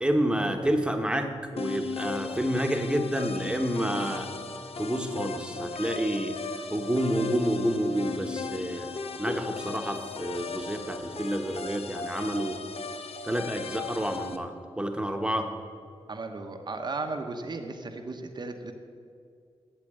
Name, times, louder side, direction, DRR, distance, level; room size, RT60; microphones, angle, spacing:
voice 1, 0.0-4.3 4.8-6.4 6.7-8.9 9.2-12.6 13.2-15.5, right 1 dB, 10° right, 5 dB, 1.2 m, -29 dB
sound 1, 1.6-14.4, left 4 dB, 70° left, 0.8 m, -37 dB
voice 2, 16.1-18.7, right 3 dB, 45° right, 5 dB, 1.0 m, -35 dB
8.7 x 7.5 x 8.9 m, 2.3 s
cardioid pair, 70°, 11 cm